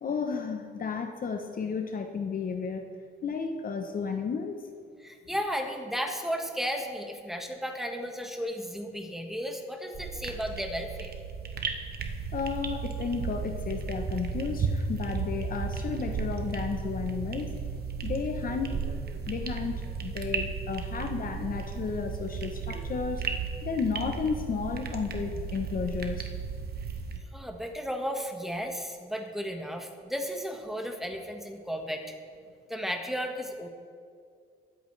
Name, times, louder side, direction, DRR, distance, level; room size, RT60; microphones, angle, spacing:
voice 1, 0.0-2.9 3.2-4.7 12.3-17.6 18.0-18.8 19.3-23.3 23.6-26.3, left 5 dB, 45° left, 5 dB, 0.9 m, -33 dB
voice 2, 5.0-11.1 27.2-32.0 32.7-33.7, equal, ahead, 3 dB, 1.5 m, -34 dB
sound 1, 9.9-27.2, right 5 dB, 50° right, 1.2 m, -34 dB
21.5 x 8.1 x 3.3 m, 2.2 s
cardioid pair, 90°, 20 cm